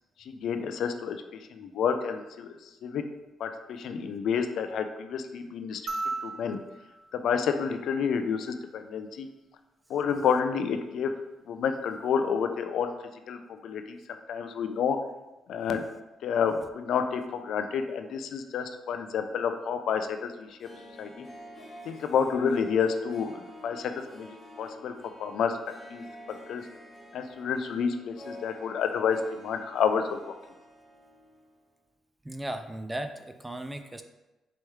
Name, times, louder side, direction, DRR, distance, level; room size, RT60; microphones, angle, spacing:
voice 1, 0.3-1.2 1.5-2.5 2.8-3.0 3.4-5.8 6.2-6.6 7.1-9.3 9.9-11.1 11.5-12.9 13.3-14.0 14.3-15.0 15.5-15.8 16.2-20.5 21.0-21.3 21.9-24.9 25.2-25.5 25.9-26.6 27.1-30.4, left 6 dB, 75° left, 7 dB, 0.3 m, -29 dB
sound 1, 5.9-8.4 10.0-10.1, right 3 dB, 55° right, 0.7 m, -38 dB
Harp, 20.4-31.5 31.7-31.8, left 1 dB, 25° left, 1.4 m, -49 dB
voice 2, 32.2-34.0, right 1 dB, 10° right, 8 dB, 0.3 m, -36 dB
4.6 x 3.0 x 3.2 m, 1.0 s
cardioid pair, 90°, 0 cm